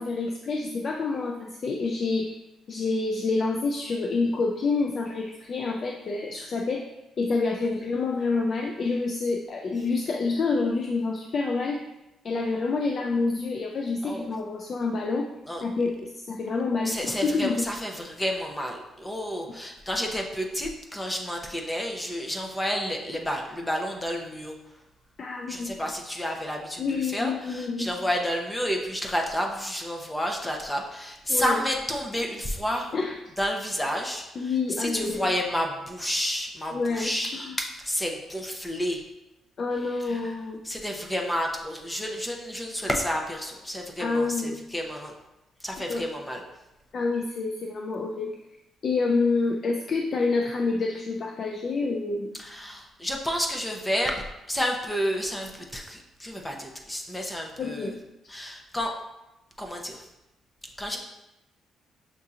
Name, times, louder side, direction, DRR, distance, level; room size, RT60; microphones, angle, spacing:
voice 1, 0.0-2.4 2.7-6.8 7.2-11.8 12.2-15.3 15.6-17.7 25.2-25.7 26.8-27.9 31.3-31.6 32.9-33.1 34.4-35.3 36.7-37.6 39.6-40.6 44.0-44.6 45.9-46.0 46.9-48.4 48.8-52.4 57.6-58.0, left 3 dB, 50° left, 1 dB, 0.4 m, -28 dB
voice 2, 16.8-24.6 25.5-32.9 33.4-39.0 39.9-40.4 40.6-45.1 45.6-46.4 52.3-57.9 58.3-58.9 59.6-60.1 60.8-61.0, equal, 10° left, 1 dB, 0.7 m, -30 dB
6.6 x 2.7 x 2.4 m, 0.94 s
cardioid pair, 90°, 0 cm